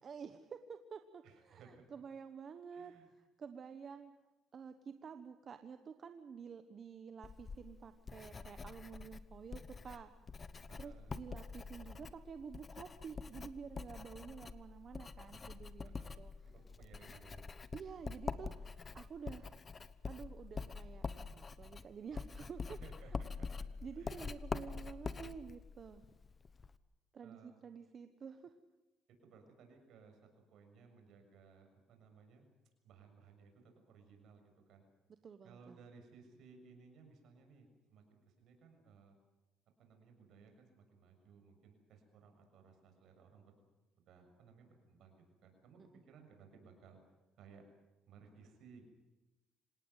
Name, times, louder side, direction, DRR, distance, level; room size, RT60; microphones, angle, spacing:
voice 1, 0.0-2.9 3.4-4.1 4.5-10.1 10.8-16.3 17.7-19.5 20.1-22.8 23.8-26.0 27.1-28.6 35.2-35.8, right 6 dB, 40° right, 9 dB, 1.2 m, -50 dB
voice 2, 1.2-1.8 2.7-3.1 10.7-11.1 15.8-16.2 16.4-17.5 22.8-23.7 23.9-24.3 27.2-27.5 29.1-30.2 30.5-32.4 32.8-34.9 35.4-39.2 39.8-43.6 44.0-45.8 46.1-47.0 47.4-47.6 48.1-48.9, right 5 dB, 65° right, 5 dB, 6.7 m, -61 dB
Writing, 7.2-26.8, left 4 dB, 25° left, 1.1 m, -46 dB
26.5 x 18.0 x 8.2 m, 1.1 s
cardioid pair, 120°, 0 cm